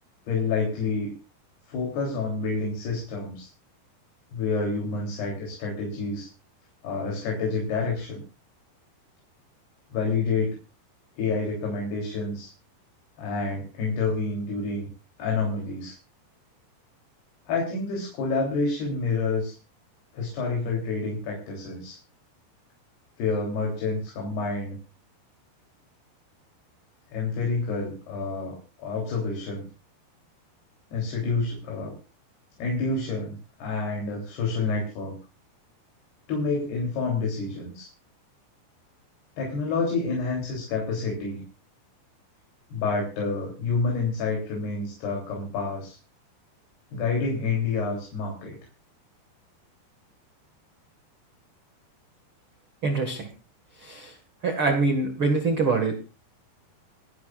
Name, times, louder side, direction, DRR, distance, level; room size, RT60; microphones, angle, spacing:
voice 1, 0.3-1.1 1.7-3.5 4.3-6.3 6.8-8.2 9.9-10.6 11.2-12.5 13.2-14.9 15.2-16.0 17.5-19.6 20.1-22.0 23.2-24.8 27.1-29.6 30.9-32.0 32.6-35.2 36.3-37.9 39.4-41.4 42.7-46.0 46.9-48.6, left 4 dB, 65° left, 0 dB, 5.4 m, -28 dB
voice 2, 52.8-53.3 53.8-54.2 54.4-55.9, right 3 dB, 45° right, 4 dB, 1.7 m, -24 dB
29.0 x 11.0 x 2.5 m, 0.31 s
omnidirectional pair, 5.0 m